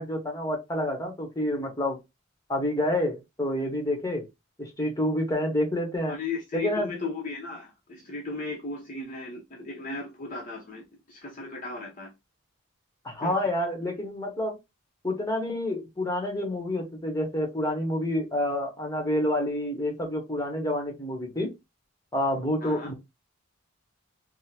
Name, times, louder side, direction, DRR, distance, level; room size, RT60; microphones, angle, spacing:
voice 1, 0.0-2.0 2.5-4.2 4.6-6.2 6.5-6.9 13.0-14.6 15.0-21.5 22.1-22.9, left 1 dB, 15° left, 0.9 m, -28 dB
voice 2, 6.1-12.1 13.2-13.4 22.6-22.9, left 4 dB, 35° left, 0.6 m, -36 dB
3.6 x 2.0 x 2.8 m
head